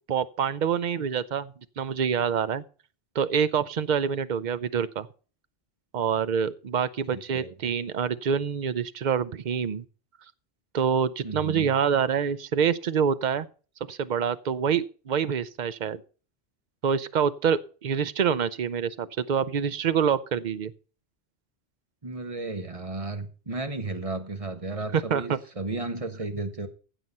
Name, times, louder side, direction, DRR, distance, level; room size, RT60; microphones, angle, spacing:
voice 1, 0.1-2.6 3.1-5.1 5.9-9.8 10.7-13.5 13.9-16.0 16.8-20.7 24.9-25.4, right 7 dB, 50° right, 0.8 m, -26 dB
voice 2, 7.1-7.5 11.2-11.7 22.0-26.7, right 2 dB, 35° right, 1.5 m, -34 dB
15.5 x 6.1 x 5.5 m
omnidirectional pair, 1.1 m